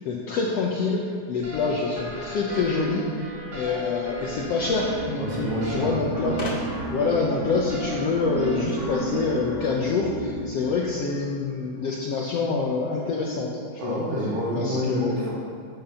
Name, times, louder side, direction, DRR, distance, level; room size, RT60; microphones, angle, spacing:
voice 1, 0.0-1.0 1.3-6.5 6.9-14.0 14.5-15.4, left 4 dB, 75° left, -2 dB, 1.5 m, -26 dB
sound 1, 1.4-9.8, right 3 dB, 30° right, 1.7 m, -36 dB
sound 2, 2.5-3.9 5.0-5.1 5.3-5.4 6.4-7.0, left 1 dB, 35° left, 1.6 m, -36 dB
sound 3, 4.3-10.6, right 1 dB, 50° right, 0.4 m, -35 dB
voice 2, 5.2-5.9 6.2-6.3 13.8-15.4, equal, 75° right, -6 dB, 4.2 m, -28 dB
10.5 x 7.8 x 5.6 m, 2.2 s
omnidirectional pair, 3.8 m